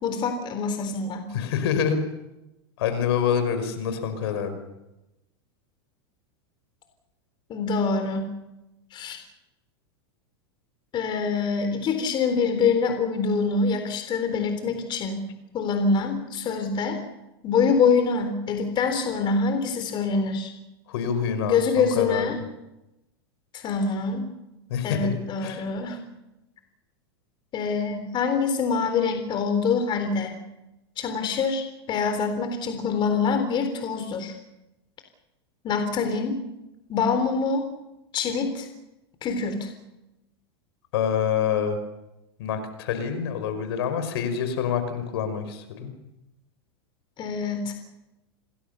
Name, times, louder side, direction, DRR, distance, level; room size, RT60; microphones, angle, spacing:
voice 1, 0.0-1.3 7.5-8.3 8.9-9.2 10.9-15.3 15.5-17.0 17.4-20.5 21.5-22.4 23.5-24.3 24.8-26.0 27.5-30.4 31.0-34.3 35.6-36.4 36.9-37.7 38.1-38.7 39.2-39.7 47.2-47.7, left 5 dB, 35° left, 7 dB, 3.9 m, -25 dB
voice 2, 1.3-2.0 2.8-4.6 20.9-22.3 24.7-25.1 25.4-25.6 40.9-41.8 42.4-45.9, left 7 dB, 70° left, 9 dB, 5.3 m, -26 dB
28.0 x 20.0 x 7.0 m, 0.96 s
hypercardioid pair, 115°, 14 cm